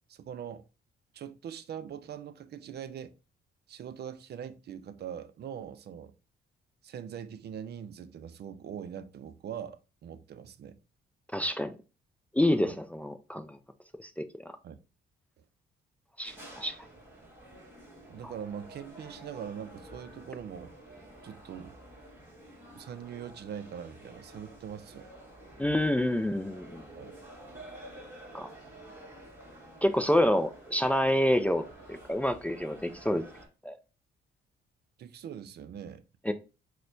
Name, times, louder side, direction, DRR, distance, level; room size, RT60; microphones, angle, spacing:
voice 1, 0.1-0.6 1.1-3.1 3.7-6.1 6.8-10.8 12.6-12.8 14.6-14.8 15.4-15.5 18.1-20.7 21.2-21.8 22.7-25.1 26.9-27.2 35.0-36.0, right 8 dB, 55° right, 0.5 m, -42 dB
voice 2, 11.3-11.7 12.3-13.6 14.0-14.2 16.2-16.7 25.6-26.8 28.3-28.5 29.8-33.2 33.6-33.8 36.3-36.4, left 1 dB, 5° left, 0.3 m, -28 dB
sound 1, 16.2-33.5, right 1 dB, 10° right, 1.4 m, -50 dB
6.1 x 2.2 x 2.6 m
cardioid pair, 90°, 20 cm